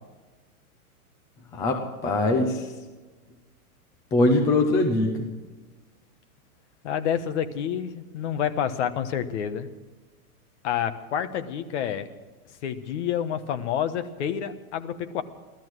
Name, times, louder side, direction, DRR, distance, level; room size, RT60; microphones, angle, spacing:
voice 1, 1.5-2.6 4.1-5.3, left 2 dB, 10° left, 4 dB, 0.5 m, -22 dB
voice 2, 6.8-9.7 10.6-12.1 12.6-15.2, left 9 dB, 50° left, 10 dB, 1.3 m, -28 dB
16.5 x 13.5 x 6.2 m, 1.2 s
hypercardioid pair, 155°, 45 cm